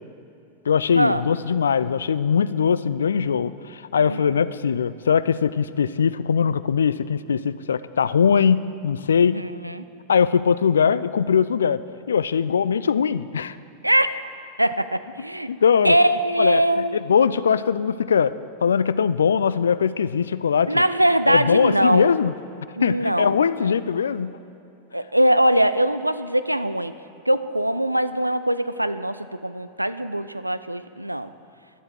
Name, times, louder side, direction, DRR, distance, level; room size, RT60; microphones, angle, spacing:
voice 1, 0.7-9.4 10.1-11.8 12.1-13.6 15.5-16.0 16.4-18.3 18.6-20.7 21.3-22.3 22.8-24.3, left 7 dB, 70° left, 16 dB, 0.3 m, -21 dB
voice 2, 4.0-4.5 9.2-9.8 13.8-14.3 14.6-15.5 15.8-17.0 20.7-22.2 22.8-23.7 24.9-27.0 27.3-31.3, right 1 dB, 85° right, 13 dB, 0.4 m, -22 dB
11.0 x 7.9 x 7.6 m, 2.7 s
figure-of-eight pair, 90°, 0 cm